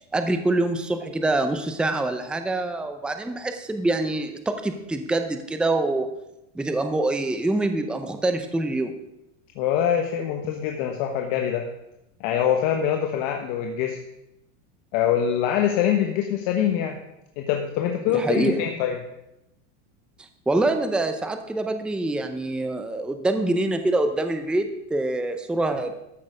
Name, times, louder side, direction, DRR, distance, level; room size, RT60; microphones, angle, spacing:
voice 1, 0.1-6.1 6.5-9.0 18.1-18.6 20.5-25.9, right 2 dB, 5° right, 8 dB, 0.6 m, -25 dB
voice 2, 9.6-11.7 12.2-14.0 14.9-17.0 17.4-19.0, left 9 dB, 60° left, 3 dB, 1.2 m, -24 dB
13.5 x 6.7 x 5.0 m, 0.86 s
supercardioid pair, 140°, 37 cm